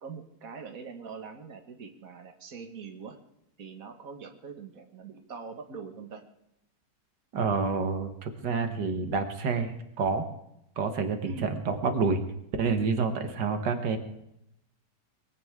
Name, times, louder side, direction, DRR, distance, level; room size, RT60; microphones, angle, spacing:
voice 1, 0.0-3.2 3.6-6.2 11.2-11.5, right 5 dB, 55° right, 5 dB, 2.1 m, -43 dB
voice 2, 7.3-10.3 10.8-12.2 12.6-14.0, right 4 dB, 85° right, 7 dB, 2.0 m, -28 dB
22.5 x 17.0 x 3.6 m, 0.82 s
omnidirectional pair, 1.8 m